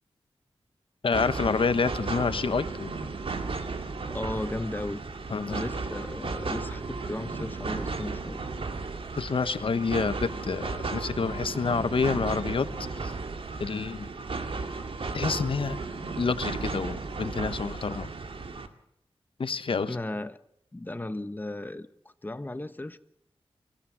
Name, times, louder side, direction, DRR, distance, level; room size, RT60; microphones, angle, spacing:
voice 1, 1.0-2.9 5.3-5.6 9.2-13.1 13.6-14.1 15.1-15.8 16.2-18.1 19.4-20.0, left 5 dB, 65° left, 12 dB, 1.2 m, -28 dB
sound 1, 1.1-18.7, right 3 dB, 70° right, 2.1 m, -34 dB
voice 2, 4.1-5.0 5.5-8.4 19.9-20.4 20.7-21.9 22.2-23.0, left 2 dB, 20° left, 11 dB, 1.2 m, -35 dB
25.5 x 16.0 x 7.5 m, 0.74 s
wide cardioid pair, 110°, 10 cm